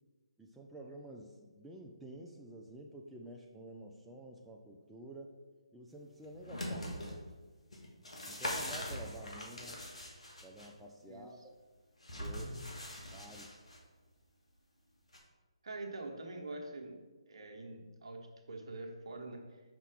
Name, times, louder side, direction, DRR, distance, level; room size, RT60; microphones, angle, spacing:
voice 1, 0.4-5.4 5.7-7.3 8.3-9.8 10.4-11.4 12.1-12.6 13.1-13.7, right 1 dB, 5° right, -2 dB, 0.4 m, -50 dB
sound 1, 6.2-7.1 7.7-10.7 12.0-13.8 15.1-15.2, left 1 dB, 75° left, 1.6 m, -42 dB
voice 2, 15.6-17.0 17.3-19.6, right 2 dB, 55° right, 2 dB, 1.1 m, -45 dB
5.9 x 5.5 x 3.6 m, 1.3 s
figure-of-eight pair, 145°, 3 cm